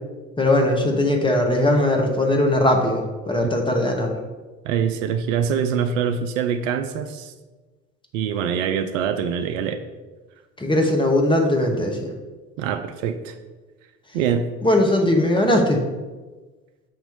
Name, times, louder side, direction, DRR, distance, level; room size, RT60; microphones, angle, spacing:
voice 1, 0.4-4.2 10.6-12.1 14.6-15.8, left 1 dB, 10° left, 1 dB, 1.2 m, -19 dB
voice 2, 4.6-7.3 8.1-9.8 12.6-13.3 14.1-14.5, right 7 dB, 65° right, 8 dB, 0.6 m, -24 dB
7.1 x 3.0 x 5.4 m, 1.2 s
hypercardioid pair, 65°, 42 cm